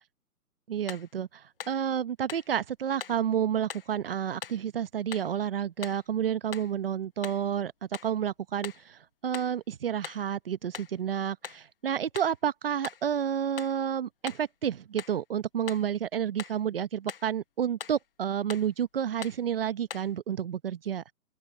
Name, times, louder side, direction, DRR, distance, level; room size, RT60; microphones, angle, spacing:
voice 1, 0.7-21.0, right 9 dB, 35° right, 1.0 m, -30 dB
sound 1, 0.9-1.1 1.6-1.8 2.3-2.5 3.0-3.2 3.7-3.9 4.4-4.6 5.1-5.3 5.8-6.1 6.5-6.8 7.2-7.5 7.9-8.2 8.6-8.9 9.3-9.6 10.0-10.3 10.7-11.0 11.4-11.7 12.2-12.4 12.8-13.1 13.6-13.8 14.3-14.5 15.0-15.2 15.7-15.9 16.4-16.6 17.1-17.3 17.8-18.1 18.5-18.7 19.2-19.4 19.9-20.2, left 8 dB, 35° left, 0.9 m, -42 dB
open air
hypercardioid pair, 165°, 47 cm